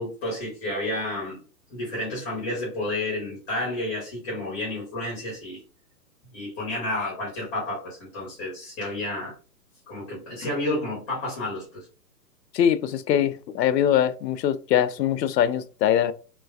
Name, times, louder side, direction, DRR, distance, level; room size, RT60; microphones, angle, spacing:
voice 1, 0.0-1.4 1.7-5.6 6.3-9.3 9.9-11.8, left 1 dB, 25° left, 1.6 m, -31 dB
voice 2, 12.5-16.1, left 10 dB, 85° left, 0.6 m, -22 dB
3.2 x 3.1 x 2.3 m
hypercardioid pair, 155°, 49 cm